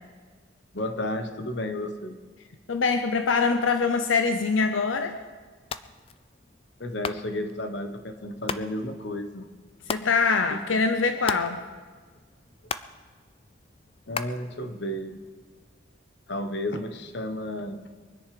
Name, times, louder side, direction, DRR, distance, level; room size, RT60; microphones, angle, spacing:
voice 1, 0.7-2.2 6.8-9.5 10.5-10.6 14.1-15.2 16.3-17.9, left 1 dB, 65° left, 8 dB, 1.1 m, -32 dB
voice 2, 2.7-5.1 9.9-11.6, left 4 dB, 85° left, 8 dB, 0.8 m, -24 dB
sound 1, 5.6-15.3, left 5 dB, 30° left, 0.4 m, -40 dB
23.0 x 10.0 x 5.1 m, 1.5 s
head